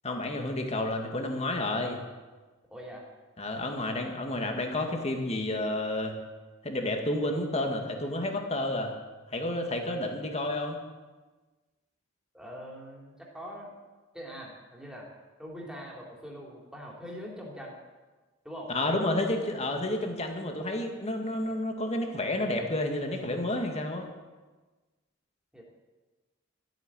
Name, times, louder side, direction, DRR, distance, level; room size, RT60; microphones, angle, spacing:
voice 1, 0.0-2.0 3.4-6.1 6.6-8.9 9.3-10.8 18.7-24.1, left 1 dB, 30° left, 3 dB, 2.0 m, -30 dB
voice 2, 2.7-3.1 12.3-13.7 14.1-15.1 15.4-17.7 18.4-18.7 21.4-21.5 25.5-25.6, equal, 5° right, -2 dB, 3.4 m, -43 dB
13.5 x 9.2 x 8.9 m, 1.3 s
head